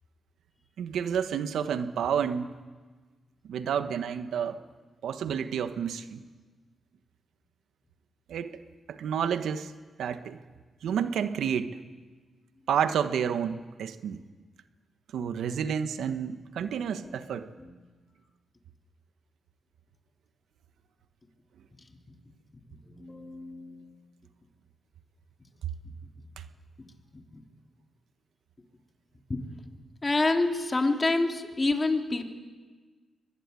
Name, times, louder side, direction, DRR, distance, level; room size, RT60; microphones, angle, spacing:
voice 1, 0.8-2.5 3.4-4.6 5.0-6.2 8.3-8.6 8.9-9.7 10.0-10.4 10.8-11.8 12.7-14.2 15.1-17.5, right 8 dB, 80° right, 9 dB, 1.4 m, -30 dB
voice 2, 22.9-23.9 27.1-27.4 29.3-29.4 30.0-32.3, left 2 dB, 30° left, 3 dB, 3.3 m, -28 dB
24.5 x 20.5 x 9.8 m, 1.4 s
cardioid pair, 65°, 0 cm